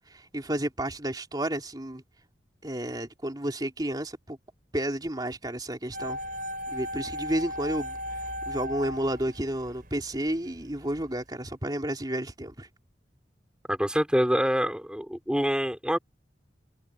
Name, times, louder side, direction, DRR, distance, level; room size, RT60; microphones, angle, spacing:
voice 1, 0.3-2.0 2.6-4.4 4.7-6.2 6.7-8.0 8.5-12.7, right 1 dB, 25° right, 3.4 m, -31 dB
sound 1, 5.9-10.0 10.3-10.4, left 1 dB, 55° right, 4.7 m, -35 dB
voice 2, 13.7-16.0, equal, 5° right, 3.2 m, -26 dB
head